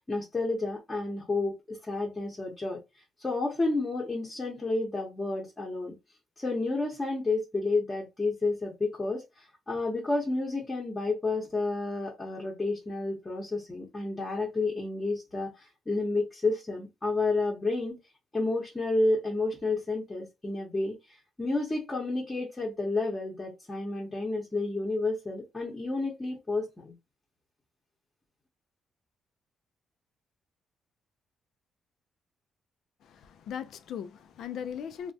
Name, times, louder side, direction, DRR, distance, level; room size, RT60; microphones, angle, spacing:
voice 1, 0.0-2.8 3.2-5.9 6.4-18.0 18.3-21.0 21.4-26.9, left 2 dB, 15° left, 0.7 m, -30 dB
voice 2, 33.0-35.1, left 8 dB, 65° left, 0.3 m, -38 dB
3.2 x 2.1 x 2.6 m
cardioid pair, 145°, 0 cm